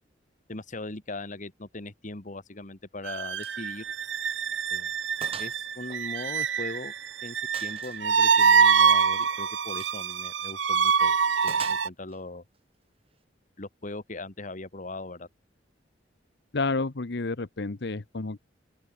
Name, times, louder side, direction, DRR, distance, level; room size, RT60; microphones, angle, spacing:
voice 1, 0.5-3.8 4.7-4.9 5.4-6.9 7.2-11.2 11.4-12.4 13.6-15.3, left 2 dB, 45° left, 2.0 m, -39 dB
sound 1, 3.1-11.9, right 6 dB, 85° right, 1.1 m, -25 dB
Gunshot gunfire, 3.4-3.6 4.0-4.1 4.5-4.6 5.2-5.6 5.9-6.9 7.5-8.0 9.7-10.0 11.5-12.2, right 6 dB, 35° right, 2.0 m, -42 dB
voice 2, 16.5-18.4, left 3 dB, 65° left, 1.0 m, -30 dB
open air
head